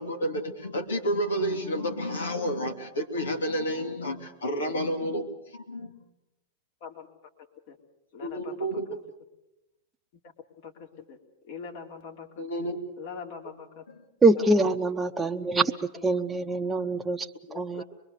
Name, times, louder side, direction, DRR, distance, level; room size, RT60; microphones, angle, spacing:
voice 1, 0.0-5.3 5.5-5.9 8.2-9.0 12.4-12.8, equal, 90° left, 4 dB, 3.1 m, -30 dB
voice 2, 8.1-8.7 10.6-11.2 11.4-12.4 13.0-13.8 15.6-15.8 17.5-17.8, left 6 dB, 60° left, 3 dB, 3.2 m, -42 dB
voice 3, 14.2-17.8, right 2 dB, 15° right, 5 dB, 1.0 m, -24 dB
24.0 x 22.5 x 6.8 m, 0.90 s
hypercardioid pair, 115°, 0 cm